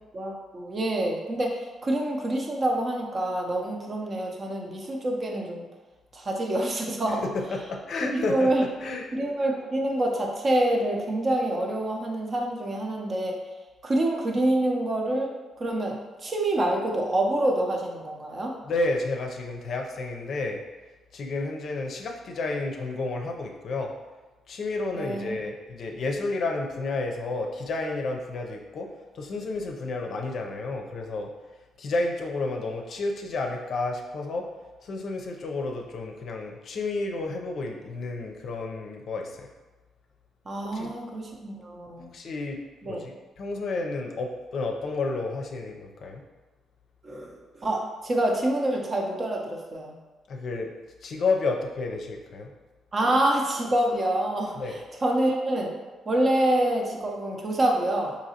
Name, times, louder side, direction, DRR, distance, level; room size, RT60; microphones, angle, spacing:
voice 1, 0.1-5.7 6.1-7.2 8.1-8.6 9.1-13.4 13.8-18.6 25.0-25.3 40.5-42.1 42.8-43.0 47.0-50.0 52.9-55.7 56.1-58.2, right 1 dB, 40° right, 0 dB, 0.6 m, -26 dB
voice 2, 7.3-9.1 18.6-20.6 21.1-23.9 24.5-28.9 29.1-31.3 31.8-34.5 34.8-39.5 40.7-40.9 42.1-42.6 42.9-46.2 50.3-50.7 51.0-52.5 54.6-54.8, left 3 dB, 60° left, 2 dB, 0.5 m, -31 dB
3.8 x 2.8 x 2.8 m, 1.2 s
cardioid pair, 90°, 0 cm